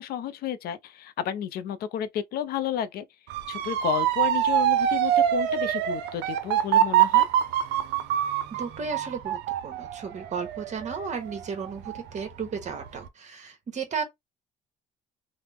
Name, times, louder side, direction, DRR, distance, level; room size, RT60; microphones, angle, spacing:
voice 1, 0.0-3.0 3.5-7.3, left 10 dB, 65° left, 0.5 m, -31 dB
Motor vehicle (road) / Siren, 3.3-12.2 12.6-13.1, right 11 dB, 85° right, 0.5 m, -25 dB
voice 2, 8.5-14.0, right 5 dB, 45° right, 1.1 m, -34 dB
3.0 x 2.0 x 3.4 m
cardioid pair, 110°, 17 cm